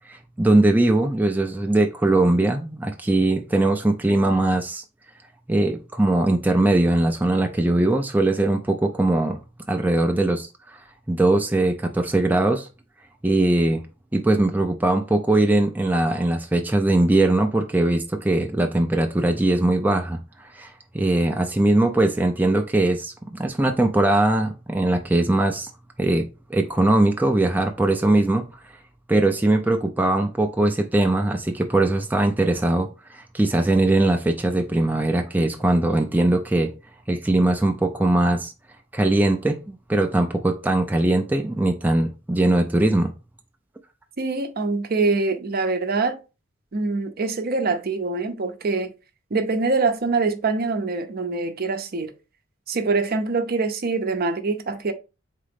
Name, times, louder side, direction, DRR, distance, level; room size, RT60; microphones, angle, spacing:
voice 1, 0.1-4.8 5.5-9.4 9.7-10.8 11.1-12.7 13.2-13.8 14.1-25.7 26.0-28.5 29.1-36.7 37.1-38.5 38.9-43.1, right 2 dB, 10° right, 0.4 m, -21 dB
voice 2, 44.2-46.2 46.7-48.9 49.3-52.1 52.7-54.9, right 3 dB, 50° right, 0.6 m, -24 dB
3.8 x 3.7 x 3.4 m
head